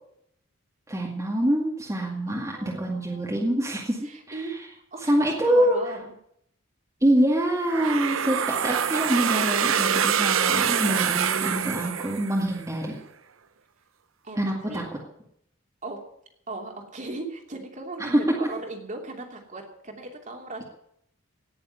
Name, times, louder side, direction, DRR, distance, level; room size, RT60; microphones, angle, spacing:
voice 1, 0.9-4.4 5.1-5.8 7.0-13.0 14.4-14.8 18.0-18.2, right 1 dB, 15° right, -2 dB, 2.2 m, -25 dB
voice 2, 2.3-3.3 4.0-6.1 14.2-14.8 15.8-16.0 16.5-20.6, right 2 dB, 35° right, 2 dB, 2.9 m, -38 dB
sound 1, 7.7-12.6, right 8 dB, 75° right, 0.9 m, -25 dB
18.0 x 7.0 x 9.5 m, 0.73 s
head